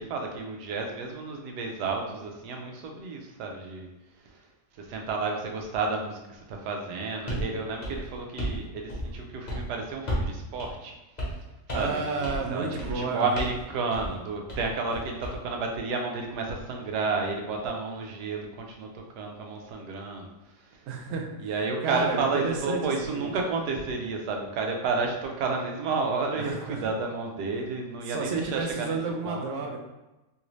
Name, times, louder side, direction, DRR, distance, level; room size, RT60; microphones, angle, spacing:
voice 1, 0.0-3.9 4.2-4.4 4.7-11.0 11.7-20.3 20.6-20.9 21.4-29.0 29.2-29.5, right 4 dB, 85° right, 1 dB, 1.2 m, -31 dB
sound 1, 7.3-7.5 7.8-8.6 8.9-9.2 9.5-9.7 10.1-10.3 10.6-10.7 11.2-11.4 11.7-12.0 12.2-12.5 12.8-13.0 13.4-13.6 13.9-14.1 14.5-15.4, equal, 35° left, 0.9 m, -32 dB
voice 2, 11.7-13.3 20.9-21.3 21.8-22.8 23.1-23.3 26.3-26.9 28.1-29.8, right 4 dB, 70° right, 2 dB, 0.8 m, -31 dB
3.1 x 2.5 x 3.0 m, 1.0 s
omnidirectional pair, 1.7 m